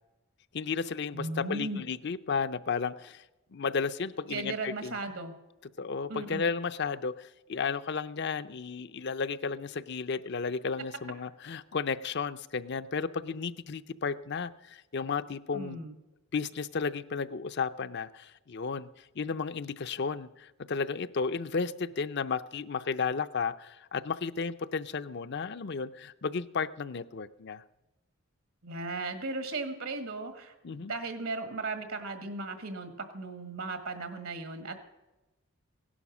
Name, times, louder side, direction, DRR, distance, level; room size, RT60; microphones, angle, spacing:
voice 1, 0.5-3.2 3.5-5.0 5.8-15.8 16.3-18.9 19.2-27.6 30.6-30.9, left 5 dB, 55° left, 13 dB, 0.6 m, -33 dB
voice 2, 1.1-1.8 4.3-5.3 6.1-6.5 15.5-16.0 28.6-34.8, right 3 dB, 75° right, 7 dB, 1.7 m, -36 dB
17.0 x 11.5 x 6.2 m, 1.0 s
head